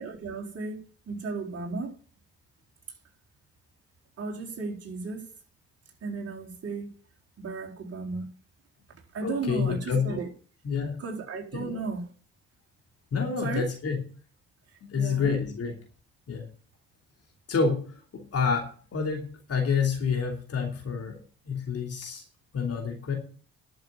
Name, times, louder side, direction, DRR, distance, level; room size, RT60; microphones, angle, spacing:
voice 1, 0.0-1.9 4.2-5.2 6.0-7.0 7.4-8.3 9.1-10.3 11.0-12.1 13.4-13.7 15.0-15.3, right 4 dB, 45° right, 4.4 m, -35 dB
voice 2, 9.2-10.2 10.6-11.0 11.5-11.9 13.1-14.0 14.8-15.7 16.3-16.4 17.5-17.9 18.1-21.2 21.5-22.2 22.5-23.2, left 5 dB, 45° left, 3.0 m, -28 dB
11.0 x 7.5 x 7.2 m
figure-of-eight pair, 45°, 33 cm